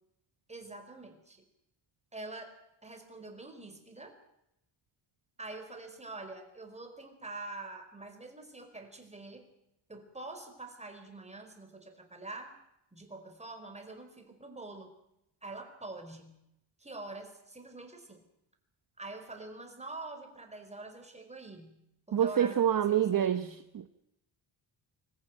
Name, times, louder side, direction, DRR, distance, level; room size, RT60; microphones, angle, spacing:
voice 1, 0.5-1.5 2.1-4.2 5.4-9.5 9.9-12.5 12.9-14.9 15.4-16.4 16.8-18.2 19.0-21.8 22.1-23.6, right 2 dB, 15° right, 4.4 m, -45 dB
voice 2, 22.1-23.9, right 10 dB, 45° right, 1.1 m, -27 dB
25.0 x 15.0 x 9.2 m
cardioid pair, 130°, 49 cm